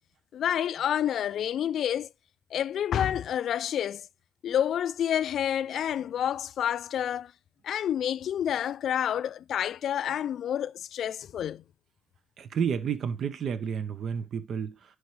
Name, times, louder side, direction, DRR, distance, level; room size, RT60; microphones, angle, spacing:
voice 1, 0.3-2.1 2.5-4.1 4.4-7.3 7.6-11.6, left 10 dB, 65° left, 0.3 m, -29 dB
voice 2, 12.4-15.0, right 7 dB, 60° right, 0.9 m, -31 dB
10.0 x 4.8 x 3.2 m
cardioid pair, 90°, 0 cm